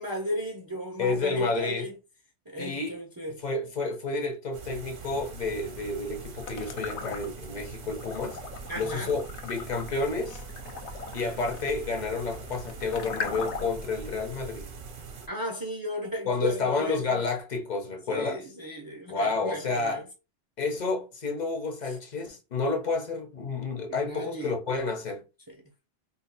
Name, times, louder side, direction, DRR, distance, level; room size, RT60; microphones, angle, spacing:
voice 1, 0.0-1.9 2.5-3.4 8.7-9.1 15.3-17.2 18.1-20.1 21.8-22.0 23.9-24.5 25.5-25.6, equal, 25° right, 0.6 m, -35 dB
voice 2, 1.0-1.9 2.6-3.0 3.4-8.4 8.8-10.4 11.1-14.7 16.3-18.5 19.1-20.0 20.6-25.2, left 3 dB, 45° left, 0.8 m, -30 dB
sound 1, 4.5-15.3, right 5 dB, 55° right, 0.8 m, -43 dB
sound 2, 6.4-7.6 8.0-13.9, left 5 dB, 85° left, 1.0 m, -39 dB
2.7 x 2.5 x 3.9 m
omnidirectional pair, 1.2 m